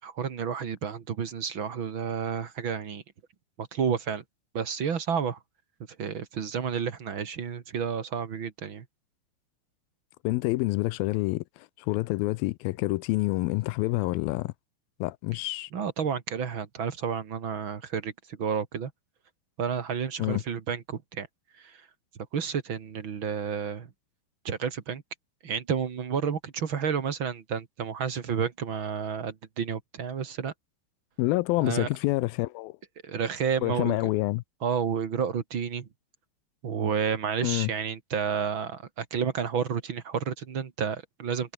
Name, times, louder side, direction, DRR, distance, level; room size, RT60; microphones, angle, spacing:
voice 1, 0.0-3.0 3.6-4.2 4.5-5.4 6.0-8.8 15.7-18.9 19.6-21.3 21.6-21.8 22.3-23.9 24.4-25.0 25.4-30.5 31.6-31.9 33.0-34.1 34.6-35.9 36.6-41.5, right 7 dB, 45° right, 1.8 m, -31 dB
voice 2, 10.2-14.5 15.0-15.7 20.2-20.4 31.2-32.8 33.6-34.4 37.4-37.7, left 20 dB, 80° left, 2.3 m, -27 dB
omnidirectional pair, 4.5 m